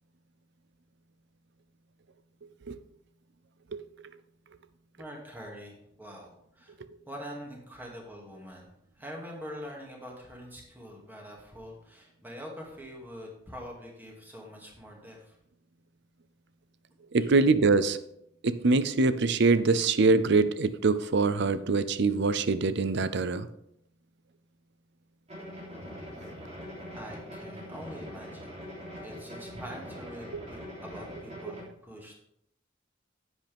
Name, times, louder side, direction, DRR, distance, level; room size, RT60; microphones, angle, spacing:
voice 1, 5.0-6.8 7.0-15.4 17.2-17.4 26.9-28.6 29.0-32.2, equal, 10° right, -2 dB, 2.3 m, -44 dB
voice 2, 17.1-18.0 18.4-23.5, right 3 dB, 65° right, 14 dB, 0.6 m, -24 dB
sound 1, 25.3-31.6, equal, 35° right, 3.2 m, -43 dB
10.5 x 8.1 x 3.5 m, 0.75 s
head